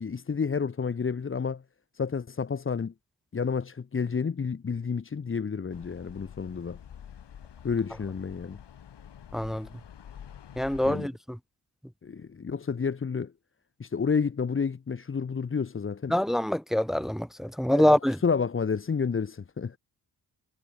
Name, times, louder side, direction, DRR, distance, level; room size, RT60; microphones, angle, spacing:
voice 1, 0.0-1.6 1.9-2.9 3.3-6.8 7.6-8.6 10.8-11.1 12.0-13.3 13.8-16.2 17.7-19.8, left 5 dB, 30° left, 1.0 m, -30 dB
sound 1, 5.7-11.0, left 9 dB, 80° left, 4.3 m, -47 dB
voice 2, 9.3-9.7 10.6-11.4 16.1-18.2, left 1 dB, ahead, 1.1 m, -25 dB
wide cardioid pair, 145°, 41 cm